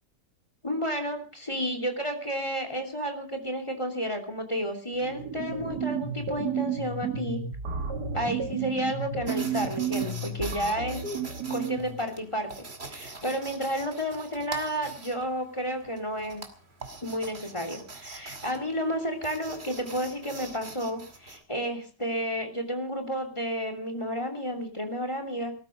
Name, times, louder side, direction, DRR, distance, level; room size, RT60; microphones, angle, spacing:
voice 1, 0.6-7.4 8.1-11.0 11.5-12.5 12.9-16.4 17.0-25.5, equal, 15° left, 6 dB, 2.9 m, -31 dB
sound 1, 4.9-12.1, right 6 dB, 70° right, 2.8 m, -32 dB
sound 2, 9.3-21.4, right 3 dB, 35° right, 2.5 m, -44 dB
18.5 x 13.5 x 5.1 m, 0.39 s
omnidirectional pair, 1.8 m